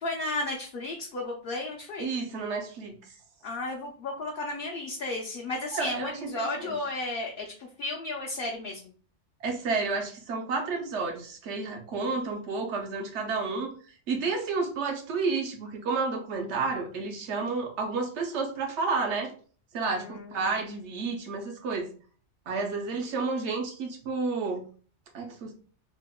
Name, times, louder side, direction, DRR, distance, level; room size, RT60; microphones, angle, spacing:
voice 1, 0.0-2.1 3.4-8.9 19.9-20.6, left 2 dB, 60° left, -1 dB, 0.6 m, -34 dB
voice 2, 2.0-3.0 5.7-6.3 6.6-6.8 9.4-13.7 14.1-19.3 19.7-21.9 22.5-24.6 25.1-25.5, right 4 dB, 70° right, 3 dB, 0.9 m, -31 dB
3.5 x 2.0 x 2.2 m, 0.41 s
omnidirectional pair, 1.3 m